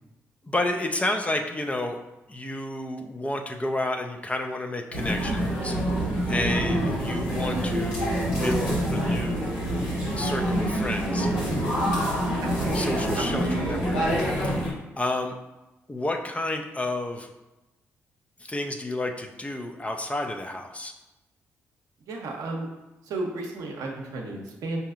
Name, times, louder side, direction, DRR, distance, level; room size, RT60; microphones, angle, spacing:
voice 1, 0.4-2.0 2.3-9.6 10.1-11.3 11.9-14.0 14.4-15.3 15.9-17.3 18.4-20.9, left 2 dB, 20° left, 4 dB, 0.5 m, -31 dB
sound 1, 4.9-14.7, equal, 85° left, 1.3 m, -26 dB
voice 2, 12.4-12.9 13.2-13.6 22.1-22.7 23.0-24.8, right 2 dB, 70° right, 1 dB, 0.7 m, -33 dB
5.4 x 2.7 x 2.4 m, 1.0 s
hypercardioid pair, 45°, 6 cm